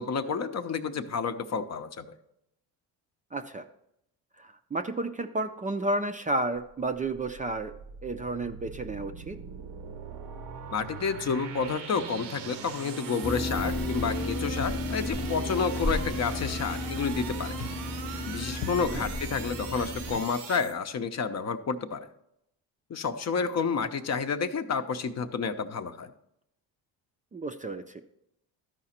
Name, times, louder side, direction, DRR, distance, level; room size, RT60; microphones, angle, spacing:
voice 1, 0.0-2.1 10.7-17.6 18.2-22.1 22.9-26.1, left 5 dB, 40° left, 8 dB, 0.7 m, -30 dB
voice 2, 3.3-3.6 4.4-7.7 8.0-9.4 18.9-19.1 27.3-28.0, right 2 dB, 20° right, 7 dB, 0.4 m, -32 dB
sound 1, 6.6-20.7, right 7 dB, 80° right, 0.9 m, -41 dB
sound 2, 13.2-20.2, left 2 dB, ahead, 0.8 m, -33 dB
Walk footsteps, 14.0-14.3 14.6-14.9 15.2-15.5 15.8-16.1 16.4-17.3 17.5-17.9 18.2-18.3 18.5-19.1 19.6-19.8 20.1-20.3, left 7 dB, 75° left, 0.8 m, -43 dB
13.0 x 5.0 x 4.3 m, 0.80 s
cardioid pair, 90°, 40 cm